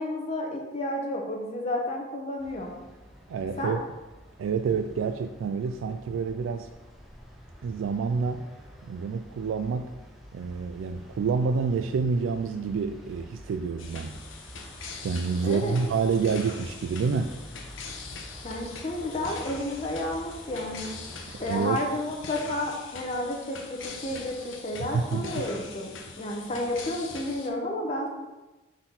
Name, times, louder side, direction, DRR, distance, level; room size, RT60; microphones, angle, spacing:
voice 1, 0.0-2.7 3.6-3.7 15.4-15.7 18.4-20.9 21.4-28.1, left 1 dB, 35° left, 0 dB, 0.8 m, -31 dB
sound 1, 2.4-21.6, equal, ahead, 0.7 m, -48 dB
voice 2, 3.3-3.9 4.4-6.7 7.6-8.4 8.8-9.9 10.3-14.2 15.0-17.4 21.3-21.8 24.8-25.5, right 5 dB, 90° right, 8 dB, 0.3 m, -28 dB
sound 2, 13.8-27.5, left 4 dB, 85° left, 0.8 m, -42 dB
5.8 x 4.1 x 3.9 m, 1.1 s
head